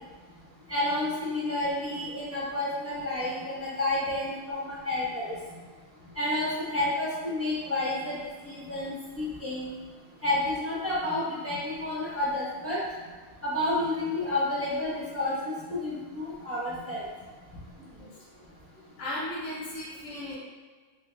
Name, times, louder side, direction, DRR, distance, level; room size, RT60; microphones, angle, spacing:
voice 1, 0.7-5.3 6.2-8.2 8.4-9.7 10.2-12.8 13.4-17.1, left 1 dB, 10° right, -9 dB, 1.0 m, -30 dB
voice 2, 17.8-18.1 18.7-20.3, left 1 dB, 70° left, -7 dB, 1.2 m, -37 dB
6.2 x 2.3 x 2.3 m, 1.5 s
omnidirectional pair, 1.4 m